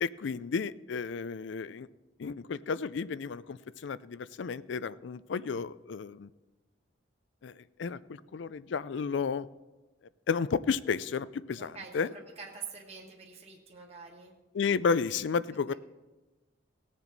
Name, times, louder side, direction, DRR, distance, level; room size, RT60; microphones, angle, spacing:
voice 1, 0.0-1.9 2.2-6.3 7.4-7.5 7.8-9.5 10.3-12.1 14.5-15.7, left 5 dB, 70° left, 17 dB, 0.4 m, -32 dB
voice 2, 11.6-14.3, right 5 dB, 35° right, -1 dB, 1.5 m, -46 dB
19.0 x 7.2 x 4.0 m, 1.1 s
head